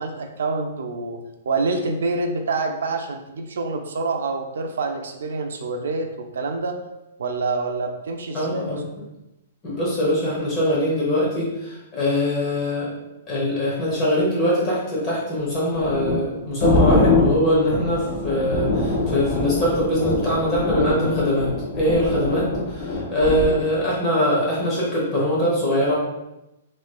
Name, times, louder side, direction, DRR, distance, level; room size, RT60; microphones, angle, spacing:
voice 1, 0.0-6.8 7.2-8.8, right 3 dB, 85° right, 5 dB, 0.4 m, -27 dB
voice 2, 8.3-8.8 9.6-12.9 13.3-25.9, equal, 20° left, -6 dB, 0.8 m, -22 dB
sound 1, 15.6-23.6, left 2 dB, 45° left, 1.0 m, -23 dB
3.1 x 2.8 x 2.2 m, 0.93 s
hypercardioid pair, 180°, 0 cm